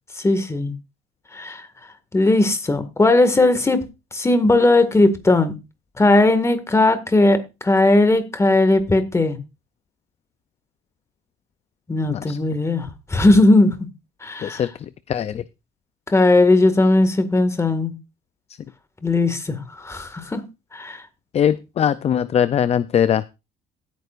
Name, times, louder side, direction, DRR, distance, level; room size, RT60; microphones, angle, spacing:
voice 1, 0.2-0.7 1.3-1.6 2.1-3.8 4.1-5.5 6.0-7.4 7.6-9.4 11.9-13.7 14.2-14.6 16.1-17.9 19.0-20.4 20.7-21.0, left 2 dB, 15° left, 1.9 m, -17 dB
voice 2, 15.1-15.4 21.3-23.2, left 9 dB, 40° left, 0.5 m, -20 dB
16.5 x 9.4 x 2.5 m
cardioid pair, 110°, 17 cm